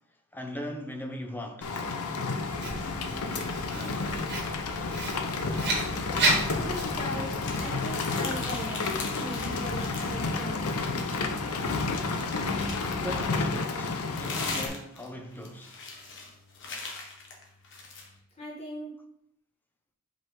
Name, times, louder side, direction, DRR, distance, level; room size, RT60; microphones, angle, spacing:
voice 1, 0.3-1.7 12.9-15.8, equal, 10° left, 0.6 m, -39 dB
Rain, 1.6-14.7, left 3 dB, 85° left, 0.7 m, -31 dB
Writing, 2.6-7.6, right 2 dB, 50° right, 1.5 m, -32 dB
voice 2, 6.5-8.9 9.1-11.4 18.4-18.9, equal, 25° left, 1.4 m, -39 dB
sound 1, 7.4-10.3 10.6-13.0 13.7-18.1, left 4 dB, 55° left, 1.3 m, -40 dB
5.3 x 4.8 x 3.7 m
head